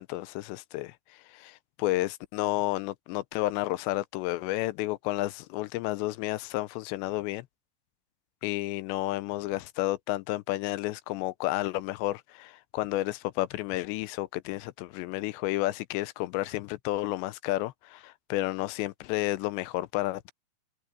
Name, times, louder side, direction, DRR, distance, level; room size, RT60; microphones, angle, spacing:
voice 1, 0.0-7.5 8.4-20.3, left 17 dB, 85° left, 2.8 m, -31 dB
omnidirectional pair, 5.2 m